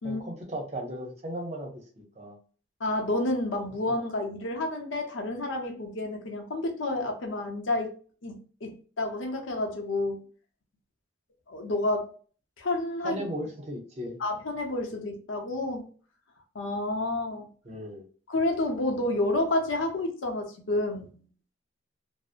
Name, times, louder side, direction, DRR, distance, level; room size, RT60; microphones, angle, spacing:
voice 1, 0.0-2.4 13.0-14.2 17.6-18.1, equal, 35° right, 0.6 m, -36 dB
voice 2, 2.8-7.9 8.2-10.2 11.5-12.1 12.6-13.2 14.2-15.9 16.5-17.5 18.3-21.3, left 2 dB, 85° left, 0.7 m, -30 dB
2.6 x 2.0 x 2.4 m
head